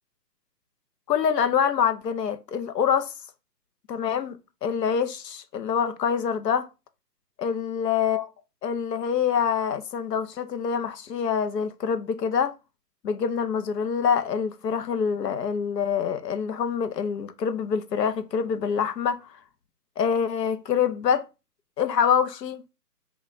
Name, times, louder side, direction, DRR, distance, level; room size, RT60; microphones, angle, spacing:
voice 1, 1.1-3.1 3.9-4.4 4.6-6.7 7.4-8.2 8.6-12.5 13.0-19.2 20.0-21.3 21.8-22.6, left 7 dB, 80° left, 0.7 m, -25 dB
3.7 x 2.4 x 3.7 m
hypercardioid pair, 165°, 49 cm